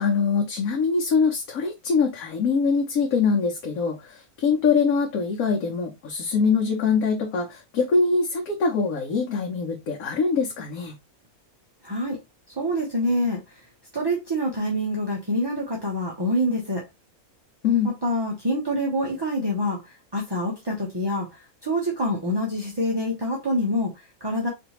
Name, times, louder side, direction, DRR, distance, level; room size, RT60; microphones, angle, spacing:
voice 1, 0.0-11.0 17.6-17.9, left 5 dB, 75° left, 1.2 m, -23 dB
voice 2, 11.8-12.2 12.5-13.4 13.9-16.8 17.8-24.5, equal, 25° right, 0.7 m, -26 dB
4.3 x 2.8 x 2.9 m
omnidirectional pair, 1.5 m